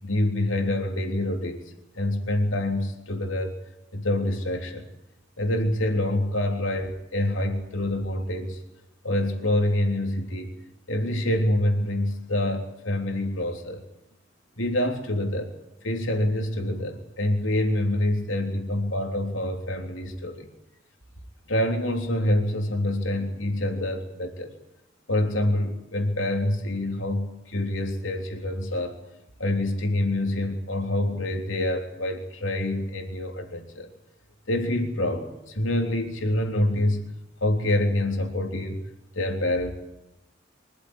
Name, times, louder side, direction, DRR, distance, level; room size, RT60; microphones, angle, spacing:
voice 1, 0.0-1.6 2.0-3.5 3.9-4.9 5.4-8.6 9.0-10.5 10.9-13.8 14.6-15.5 15.8-20.5 21.5-24.5 25.1-29.0 29.4-33.9 34.5-37.1 37.4-38.8 39.1-39.7, left 1 dB, 90° left, 4 dB, 3.4 m, -26 dB
24.5 x 14.5 x 9.6 m, 0.87 s
head